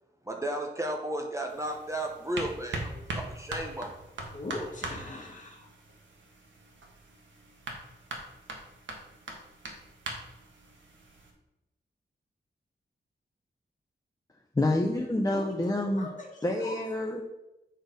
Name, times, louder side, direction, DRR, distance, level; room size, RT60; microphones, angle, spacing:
voice 1, 0.3-3.9, right 1 dB, 15° right, 2 dB, 0.8 m, -34 dB
sound 1, 1.5-11.3, right 2 dB, 80° right, 1.4 m, -41 dB
voice 2, 4.3-5.7 15.3-15.6 15.9-16.8, left 2 dB, 40° left, -1 dB, 1.9 m, -41 dB
voice 3, 14.5-16.1 16.4-17.2, left 1 dB, 20° left, 1 dB, 0.7 m, -27 dB
8.0 x 4.4 x 5.2 m, 0.92 s
wide cardioid pair, 140°, 19 cm